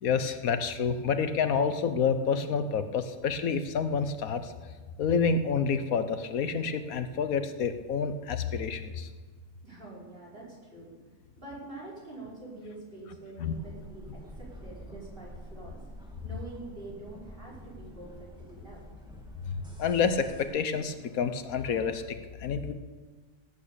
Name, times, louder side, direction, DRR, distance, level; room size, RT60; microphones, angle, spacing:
voice 1, 0.0-4.5 5.0-9.1 13.4-13.5 19.4-22.0 22.4-22.7, left 6 dB, 80° left, 10 dB, 1.3 m, -28 dB
voice 2, 9.6-15.8 16.2-18.8, right 2 dB, 40° right, -6 dB, 5.5 m, -46 dB
sound 1, 13.5-20.4, equal, 5° right, 2.0 m, -48 dB
18.5 x 8.8 x 6.9 m, 1.5 s
omnidirectional pair, 1.5 m